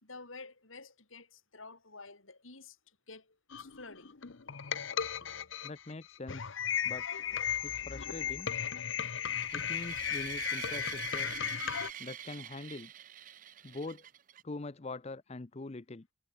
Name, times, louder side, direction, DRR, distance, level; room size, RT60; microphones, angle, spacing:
voice 1, 0.0-4.2, left 3 dB, 90° left, 5.9 m, -50 dB
sound 1, 3.5-11.9, left 8 dB, 70° left, 0.9 m, -35 dB
voice 2, 5.6-7.0 7.6-8.5 9.5-11.3 12.0-12.9 13.6-14.1 14.4-16.1, left 2 dB, 30° left, 0.6 m, -43 dB
sound 2, 9.1-14.4, right 11 dB, 40° right, 0.5 m, -45 dB
head